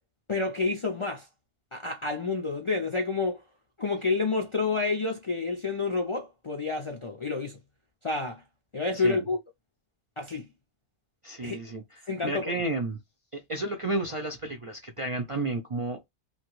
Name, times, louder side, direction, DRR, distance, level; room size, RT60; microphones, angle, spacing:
voice 1, 0.3-1.3 1.7-3.4 3.8-7.6 8.0-8.4 8.7-9.4 10.2-10.5 11.4-11.6 12.1-12.5, left 3 dB, 45° left, 0.4 m, -29 dB
voice 2, 8.9-9.2 11.2-13.0 13.3-16.1, right 2 dB, 45° right, 0.4 m, -32 dB
2.9 x 2.2 x 3.0 m
omnidirectional pair, 1.1 m